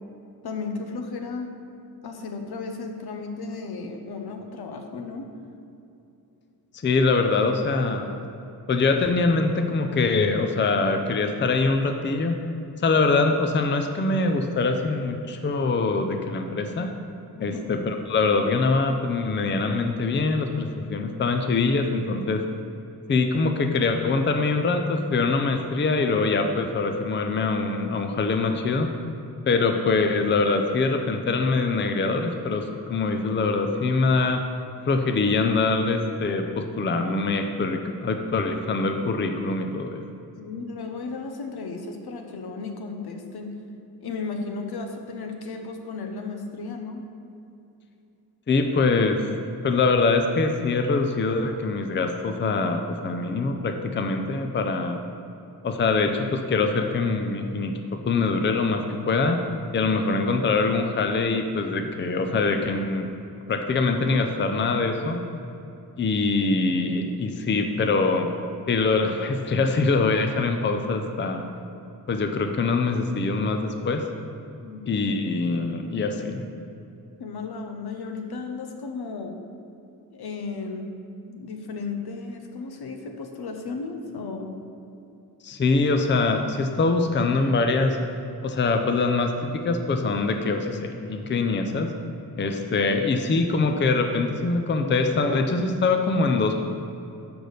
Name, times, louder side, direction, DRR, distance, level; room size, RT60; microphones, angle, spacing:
voice 1, 0.4-1.5 2.0-5.3 17.4-17.7 40.4-43.6 44.0-47.0 74.6-74.8 77.2-79.4 80.1-80.9 81.3-84.5, left 4 dB, 75° left, 4 dB, 0.9 m, -34 dB
voice 2, 6.8-8.1 8.7-12.4 12.8-16.9 17.4-22.4 23.1-28.9 29.5-34.4 34.9-40.0 48.5-49.2 49.6-55.0 55.6-59.4 59.7-63.1 63.5-65.2 66.0-68.3 68.7-71.5 72.1-74.0 74.9-76.5 85.4-88.0 88.4-91.9 92.4-96.5, left 3 dB, 30° left, 5 dB, 0.5 m, -23 dB
6.0 x 5.1 x 6.5 m, 2.8 s
cardioid pair, 100°, 38 cm